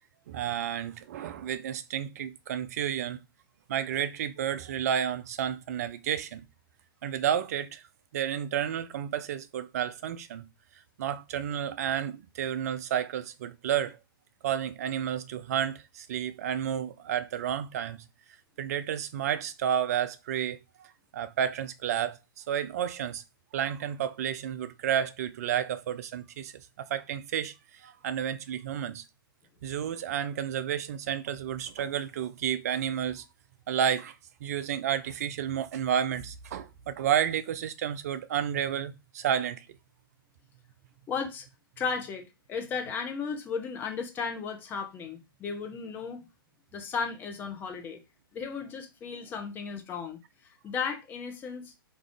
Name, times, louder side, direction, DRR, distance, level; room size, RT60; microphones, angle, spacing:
voice 1, 0.3-3.2 3.7-6.4 7.0-7.8 8.1-10.4 11.0-14.0 14.4-18.0 18.6-23.2 23.5-29.0 29.6-33.2 33.7-39.7, right 9 dB, 40° right, 0.4 m, -31 dB
voice 2, 41.1-41.5 41.8-46.3 46.7-48.0 48.3-51.7, left 5 dB, 15° left, 0.5 m, -35 dB
2.5 x 2.4 x 3.3 m
figure-of-eight pair, 115°, 12 cm